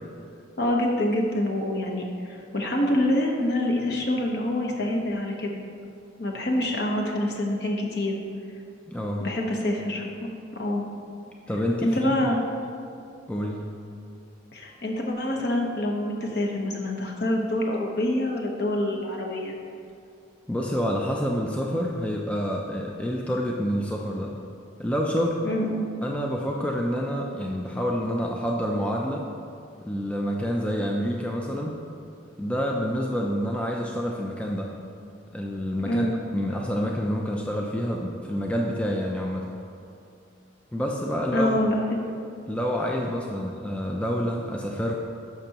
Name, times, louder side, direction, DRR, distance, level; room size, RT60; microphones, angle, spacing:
voice 1, 0.6-5.6 6.2-8.2 9.2-10.1 10.5-10.8 11.8-12.4 14.5-19.5 25.4-25.8 35.9-36.1 41.3-41.7, left 1 dB, 55° left, 0 dB, 1.0 m, -26 dB
voice 2, 8.9-9.3 11.5-12.4 13.3-13.7 20.5-24.3 24.8-25.4 26.0-29.3 29.8-31.8 32.4-34.7 35.3-39.5 40.7-41.5 42.5-44.9, equal, 5° left, -1 dB, 0.4 m, -28 dB
12.0 x 6.0 x 2.9 m, 2.5 s
head